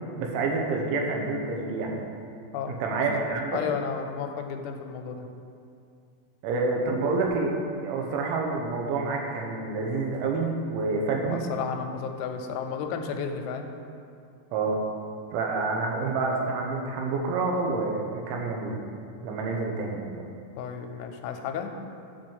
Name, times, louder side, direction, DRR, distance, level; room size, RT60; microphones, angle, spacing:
voice 1, 0.2-2.0 2.7-3.6 6.4-7.5 7.8-11.5 14.5-14.8 15.3-18.8 19.2-20.2, right 3 dB, 80° right, 0 dB, 3.3 m, -28 dB
voice 2, 2.5-3.2 3.5-5.3 11.3-13.7 20.6-21.7, left 7 dB, 85° left, 5 dB, 3.0 m, -33 dB
7.5 x 5.4 x 7.0 m, 2.4 s
omnidirectional pair, 5.4 m